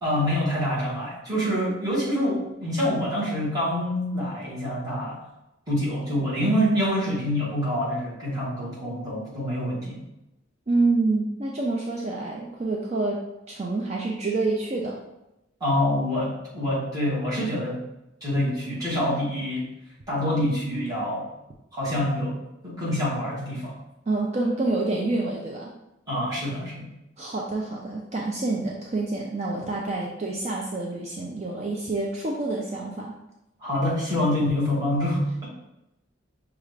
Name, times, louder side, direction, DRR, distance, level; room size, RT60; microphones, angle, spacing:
voice 1, 0.0-5.2 5.7-10.0 15.6-17.8 18.2-19.7 20.1-21.3 21.7-22.4 22.6-23.7 26.1-26.9 33.6-35.5, left 1 dB, 20° right, -7 dB, 1.6 m, -26 dB
voice 2, 10.7-15.0 24.1-25.7 27.2-33.2, right 2 dB, 35° right, -2 dB, 0.4 m, -27 dB
6.0 x 2.4 x 3.3 m, 0.91 s
head